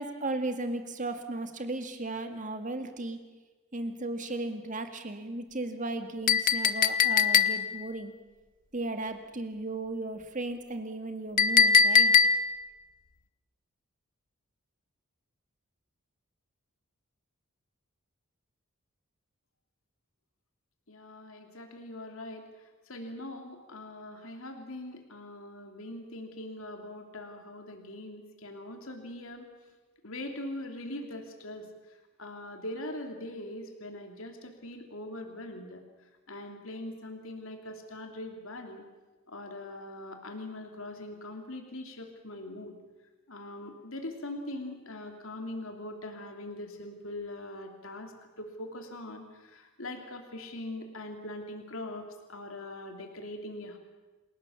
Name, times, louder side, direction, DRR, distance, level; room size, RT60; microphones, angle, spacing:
voice 1, 0.0-3.2 3.7-8.1 8.7-12.1, right 2 dB, 35° right, 7 dB, 2.1 m, -35 dB
Chink clink, 6.3-7.9 11.4-12.7, left 6 dB, 40° left, 0.8 m, -22 dB
voice 2, 20.9-22.4 22.9-29.5 30.0-31.7 32.2-35.8 36.3-38.8 39.3-42.7 43.3-53.8, left 1 dB, 65° left, 4 dB, 3.0 m, -41 dB
28.0 x 18.0 x 7.2 m, 1.2 s
head